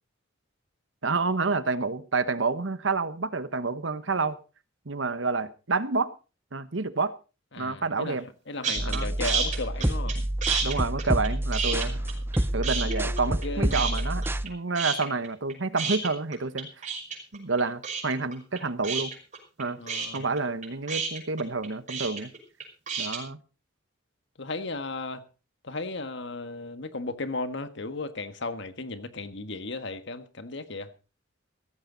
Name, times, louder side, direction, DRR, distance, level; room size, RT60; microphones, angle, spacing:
voice 1, 1.0-4.4 4.9-6.1 6.5-7.1 7.6-8.3 8.8-9.1 10.6-12.0 12.5-16.7 17.3-19.1 19.6-19.8 20.1-22.3 23.0-23.4, right 4 dB, 70° right, 13 dB, 1.2 m, -29 dB
voice 2, 7.5-8.2 8.5-10.2 11.8-12.0 13.4-13.8 19.8-20.3 24.4-25.2 25.6-30.9, left 3 dB, 65° left, 10 dB, 1.6 m, -35 dB
sound 1, 8.6-9.0 9.2-10.1 10.4-12.4 12.6-13.4 13.7-14.5 14.7-23.2, right 6 dB, 40° right, 5.8 m, -30 dB
sound 2, 8.8-14.5, right 1 dB, 10° right, 0.7 m, -28 dB
sound 3, 8.9-10.1 11.6-11.7 12.3-13.7, left 1 dB, 10° left, 3.9 m, -47 dB
16.5 x 14.5 x 4.0 m, 0.34 s
head